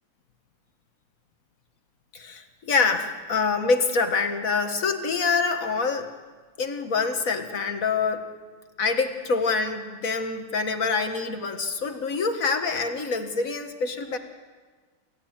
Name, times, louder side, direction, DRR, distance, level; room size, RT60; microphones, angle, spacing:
voice 1, 2.1-6.1 6.6-8.2 8.8-14.2, left 4 dB, 45° left, 6 dB, 2.1 m, -26 dB
28.5 x 16.5 x 9.0 m, 1.5 s
omnidirectional pair, 2.0 m